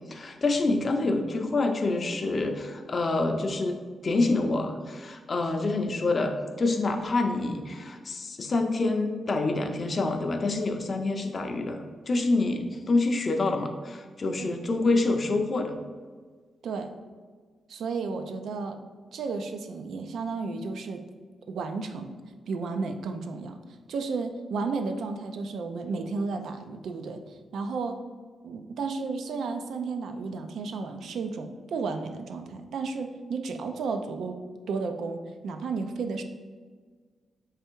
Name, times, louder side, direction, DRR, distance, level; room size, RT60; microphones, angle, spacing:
voice 1, 0.1-3.8 4.0-15.8, left 2 dB, 40° left, 5 dB, 0.5 m, -27 dB
voice 2, 16.6-16.9 17.7-18.8 19.1-21.0 21.5-22.2 22.5-23.6 23.9-28.0 28.4-34.4 34.7-36.2, right 4 dB, 80° right, 7 dB, 0.4 m, -33 dB
3.3 x 3.3 x 4.5 m, 1.5 s
wide cardioid pair, 125°, 0 cm